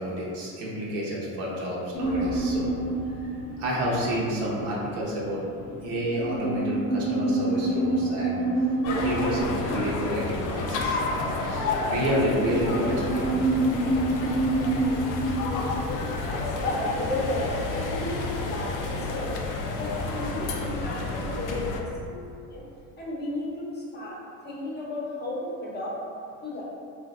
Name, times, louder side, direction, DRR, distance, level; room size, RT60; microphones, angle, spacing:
voice 1, 0.0-2.8 3.2-5.4 5.8-8.6 9.0-13.3, equal, 75° right, -5 dB, 0.8 m, -30 dB
sound 1, 1.9-17.4, right 2 dB, 80° left, 0.7 m, -29 dB
sound 2, 2.0-6.2, left 1 dB, 10° right, 0.5 m, -45 dB
sound 3, 8.8-21.8, left 3 dB, 50° left, 0.4 m, -30 dB
voice 2, 15.9-19.4 19.7-22.7 23.0-24.2 24.4-25.9 26.4-26.6, left 2 dB, 25° left, -5 dB, 0.8 m, -34 dB
3.1 x 2.6 x 2.4 m, 2.4 s
supercardioid pair, 95°, 40 cm